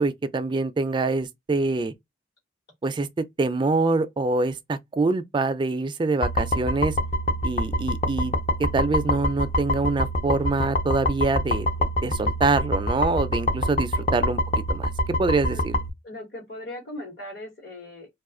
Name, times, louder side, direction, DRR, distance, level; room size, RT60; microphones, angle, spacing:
voice 1, 0.0-1.9 2.8-7.0 7.4-8.3 8.6-11.7 12.0-14.9 15.2-15.8, right 3 dB, 25° right, 0.3 m, -25 dB
sound 1, 6.2-15.9, left 1 dB, 35° left, 0.5 m, -26 dB
voice 2, 16.0-18.1, left 1 dB, 55° left, 1.2 m, -39 dB
2.4 x 2.4 x 3.6 m
head